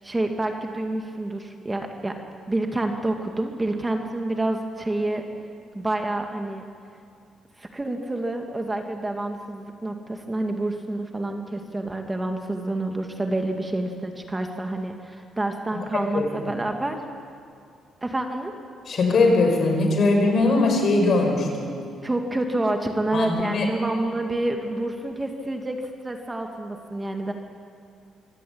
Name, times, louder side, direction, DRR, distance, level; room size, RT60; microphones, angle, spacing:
voice 1, 0.0-2.2 2.5-5.2 5.7-6.7 7.6-17.0 18.0-18.5 22.0-27.3, right 2 dB, 15° right, 4 dB, 2.1 m, -28 dB
voice 2, 15.9-16.5 18.9-21.8 23.1-23.7, left 3 dB, 55° left, 3 dB, 5.5 m, -21 dB
24.5 x 17.0 x 8.7 m, 2.3 s
cardioid pair, 90°, 0 cm